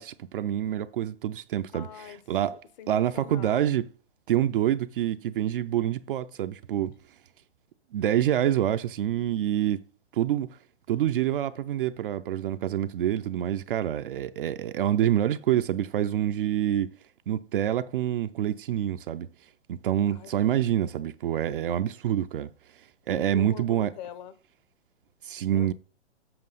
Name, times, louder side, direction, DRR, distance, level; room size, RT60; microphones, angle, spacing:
voice 1, 0.0-1.9 2.3-2.6 2.9-3.8 4.3-6.9 7.9-9.8 10.1-10.5 10.9-16.9 17.3-19.3 19.7-22.5 23.1-23.9 25.2-25.7, right 11 dB, 50° right, 0.5 m, -26 dB
voice 2, 1.7-2.2 2.5-3.8 20.1-21.1 23.1-24.3 25.5-25.7, left 10 dB, 40° left, 0.8 m, -44 dB
7.7 x 6.8 x 4.0 m
figure-of-eight pair, 120°, 34 cm